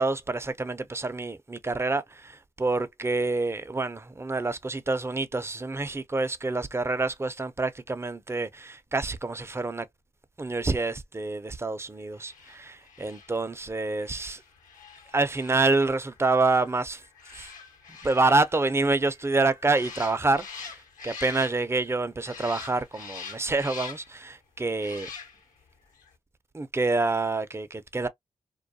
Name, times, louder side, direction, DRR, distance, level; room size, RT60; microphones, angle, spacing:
voice 1, 0.0-9.9 10.4-14.4 15.1-17.0 17.3-17.5 18.0-20.5 21.0-25.1 26.5-28.1, right 3 dB, 20° right, 0.5 m, -27 dB
sound 1, 12.1-21.9 22.2-24.2 24.7-25.6 25.9-26.1, left 5 dB, 70° left, 1.0 m, -45 dB
2.3 x 2.2 x 2.6 m
supercardioid pair, 40°, 14 cm